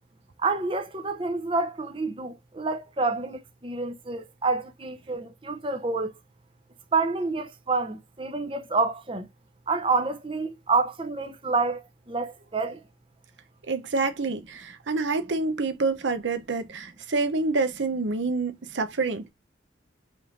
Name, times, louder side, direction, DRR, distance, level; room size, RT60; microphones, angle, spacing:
voice 1, 0.4-6.1 6.9-9.3 9.7-12.8, right 3 dB, 30° right, 0.7 m, -28 dB
voice 2, 13.7-19.3, right 3 dB, 80° right, 0.7 m, -27 dB
5.2 x 3.2 x 2.5 m
head